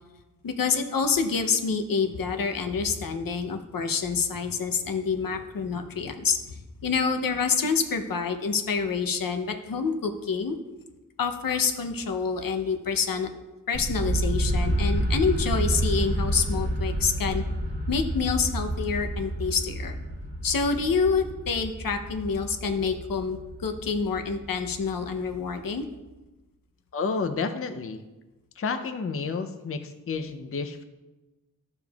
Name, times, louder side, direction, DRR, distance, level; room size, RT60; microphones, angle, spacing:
voice 1, 0.4-10.6 11.2-13.3 13.7-17.4 17.9-19.9 20.4-25.9, left 5 dB, 80° left, 6 dB, 0.7 m, -27 dB
sound 1, 13.7-25.6, right 1 dB, 30° right, 1.4 m, -29 dB
voice 2, 26.9-28.0 28.6-30.8, left 4 dB, 40° left, 7 dB, 0.5 m, -30 dB
11.5 x 6.9 x 2.3 m, 1.1 s
wide cardioid pair, 90°, 34 cm